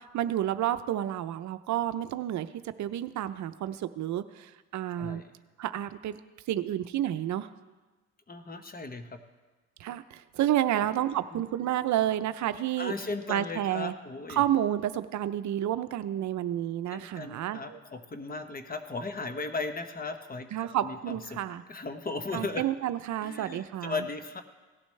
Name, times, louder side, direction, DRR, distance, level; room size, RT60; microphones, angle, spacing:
voice 1, 0.1-2.5 2.8-5.2 5.6-6.2 6.5-7.5 9.8-12.9 13.3-13.9 14.3-17.8 20.5-21.6 22.3-24.0, right 12 dB, 70° right, 11 dB, 0.6 m, -30 dB
voice 2, 5.0-5.3 8.3-9.2 10.7-10.9 11.3-11.4 12.8-14.4 16.9-21.4 21.7-22.7 23.2-24.4, left 3 dB, 30° left, 8 dB, 1.0 m, -37 dB
17.5 x 11.5 x 3.2 m, 1.3 s
cardioid pair, 90°, 30 cm